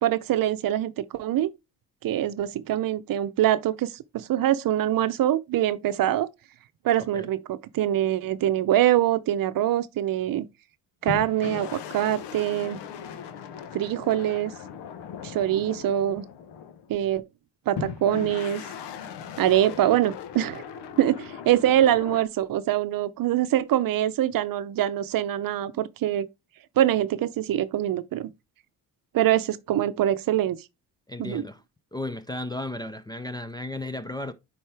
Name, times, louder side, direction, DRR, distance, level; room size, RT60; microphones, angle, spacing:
voice 1, 0.0-1.5 2.0-6.3 6.8-10.5 11.0-12.8 13.7-14.5 15.2-16.2 16.9-17.2 17.7-18.6 19.4-20.6 21.0-26.3 26.8-28.3 29.1-30.6 31.2-31.4, right 12 dB, 55° right, 0.7 m, -24 dB
sound 1, 11.1-17.0 17.8-22.3, left 7 dB, 80° left, 1.2 m, -38 dB
voice 2, 31.1-31.6 31.9-34.3, left 2 dB, 10° left, 0.4 m, -34 dB
10.0 x 4.3 x 3.4 m
cardioid pair, 120°, 41 cm